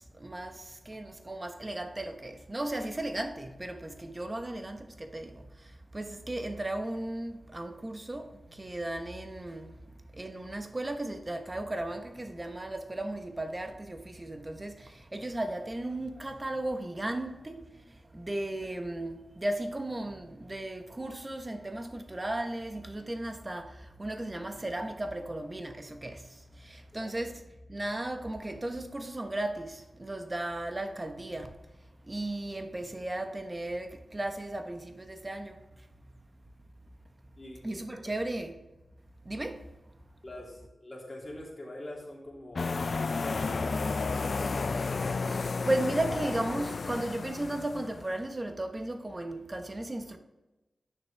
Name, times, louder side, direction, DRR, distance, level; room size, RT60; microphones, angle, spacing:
voice 1, 0.2-5.4 5.9-8.3 8.6-9.7 10.2-17.6 18.1-23.7 24.0-26.2 26.7-27.3 27.7-31.5 32.1-35.6 37.6-38.5 39.3-39.6 45.6-50.2, right 1 dB, 30° right, 1.1 m, -35 dB
voice 2, 37.4-38.1 40.2-44.0, left 1 dB, 40° left, 2.8 m, -44 dB
sound 1, 42.6-48.1, left 4 dB, 65° left, 0.4 m, -32 dB
9.3 x 6.3 x 3.5 m
cardioid pair, 50°, 0 cm